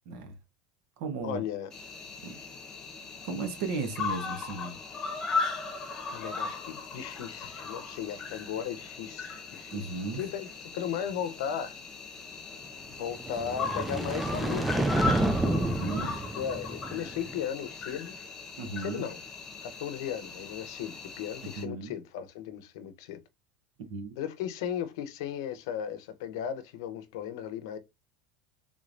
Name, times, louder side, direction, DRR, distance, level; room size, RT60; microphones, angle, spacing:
voice 1, 0.1-0.4 1.0-1.4 2.2-2.4 3.2-4.8 9.7-10.2 15.6-16.2 18.6-19.1 21.4-21.9 23.8-24.1, right 4 dB, 60° right, 0.9 m, -35 dB
voice 2, 1.2-1.7 6.1-9.8 10.2-10.5 10.7-11.8 13.0-15.7 16.2-18.2 18.8-19.2 19.6-23.2 24.2-27.8, left 9 dB, 80° left, 0.7 m, -36 dB
Cricket, 1.7-21.6, left 4 dB, 20° left, 1.1 m, -38 dB
sound 1, 13.1-17.4, right 2 dB, 5° right, 0.3 m, -30 dB
3.6 x 3.1 x 2.5 m
cardioid pair, 170°, 2 cm